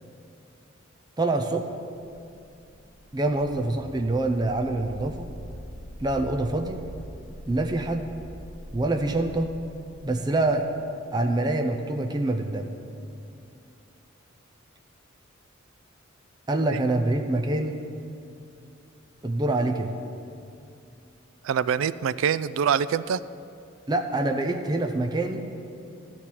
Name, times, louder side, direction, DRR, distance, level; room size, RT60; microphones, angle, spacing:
voice 1, 1.2-1.7 3.1-5.3 6.0-6.8 7.5-8.1 8.7-9.6 10.0-10.7 11.1-12.7 16.5-17.8 19.2-19.9 23.9-25.5, right 2 dB, 20° right, 4 dB, 0.5 m, -25 dB
sound 1, 2.0-10.7, equal, 30° left, 1.5 m, -44 dB
voice 2, 21.4-23.2, right 7 dB, 80° right, 15 dB, 0.3 m, -24 dB
12.5 x 4.5 x 8.4 m, 2.5 s
head